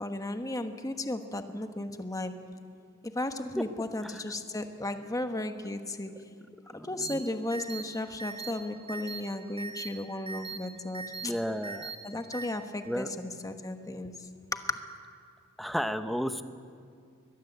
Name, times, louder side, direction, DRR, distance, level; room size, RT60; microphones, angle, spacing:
voice 1, 0.0-2.3 3.1-6.1 6.8-11.3 12.0-14.1 14.5-14.6, left 1 dB, 15° left, 7 dB, 1.3 m, -35 dB
voice 2, 6.7-7.2 11.2-11.9 12.8-13.1 15.6-16.4, equal, ahead, 9 dB, 0.9 m, -33 dB
sound 1, 7.0-7.1 7.5-7.8 8.2-8.5 8.9-9.2 9.6-9.9 10.3-10.6 10.9-11.3 11.6-11.9 12.3-12.4, right 5 dB, 25° right, 4.0 m, -39 dB
22.5 x 20.5 x 8.0 m, 2.3 s
head